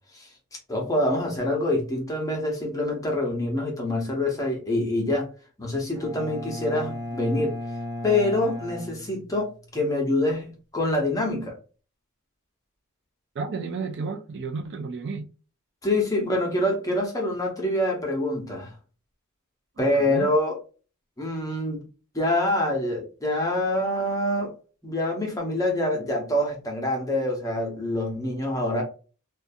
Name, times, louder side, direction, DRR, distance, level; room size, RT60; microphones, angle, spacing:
voice 1, 0.7-5.3 5.6-7.6 8.0-11.5 15.8-18.7 19.8-20.6 21.2-21.8 22.1-24.5 24.8-28.8, left 1 dB, 15° left, 0.7 m, -26 dB
Bowed string instrument, 5.9-9.8, left 1 dB, 20° right, 0.8 m, -36 dB
voice 2, 13.4-15.3 19.8-20.3, right 4 dB, 50° right, 0.4 m, -32 dB
2.5 x 2.3 x 2.5 m
head